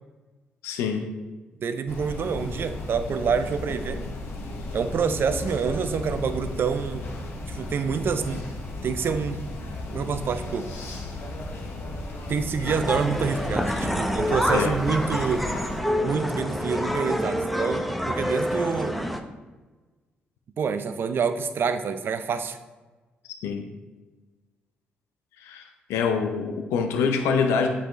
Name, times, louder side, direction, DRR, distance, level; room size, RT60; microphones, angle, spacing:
voice 1, 0.6-1.0 14.5-14.7 23.4-23.6 25.4-25.6 25.9-27.7, left 5 dB, 80° left, 4 dB, 0.5 m, -25 dB
voice 2, 1.6-4.0 4.7-7.1 7.5-8.5 8.8-9.4 9.9-10.7 12.3-15.5 16.0-19.0 20.6-22.6, right 6 dB, 55° right, 10 dB, 0.5 m, -27 dB
sound 1, 1.9-15.8, left 2 dB, 65° left, 1.1 m, -35 dB
sound 2, 12.7-19.2, equal, ahead, 0.7 m, -27 dB
7.9 x 4.2 x 3.0 m, 1.3 s
hypercardioid pair, 45°, 4 cm